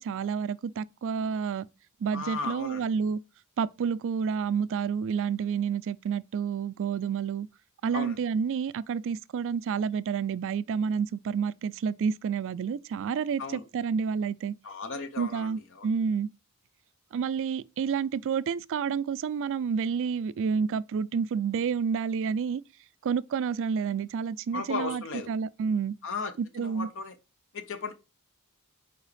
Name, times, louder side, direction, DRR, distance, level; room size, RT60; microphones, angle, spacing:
voice 1, 0.0-1.7 2.0-3.2 3.6-7.5 7.8-14.6 15.2-16.3 17.1-22.6 23.0-26.0 26.4-26.9, right 6 dB, 60° right, 0.3 m, -29 dB
voice 2, 2.1-2.9 7.9-8.2 13.4-13.6 14.6-15.9 24.5-25.3 26.0-27.1 27.5-27.9, left 4 dB, 60° left, 0.8 m, -35 dB
7.2 x 4.7 x 3.3 m
head